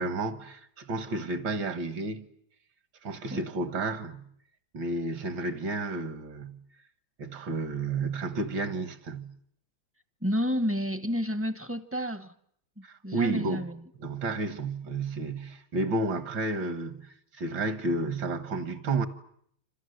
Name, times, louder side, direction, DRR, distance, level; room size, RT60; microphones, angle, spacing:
voice 1, 0.0-2.3 3.0-4.3 4.7-6.6 7.2-9.4 12.8-13.6 14.0-19.1, right 3 dB, 65° right, 2.1 m, -31 dB
voice 2, 10.2-12.3 12.8-13.8, equal, 10° right, 0.7 m, -30 dB
27.5 x 27.5 x 7.9 m
omnidirectional pair, 2.2 m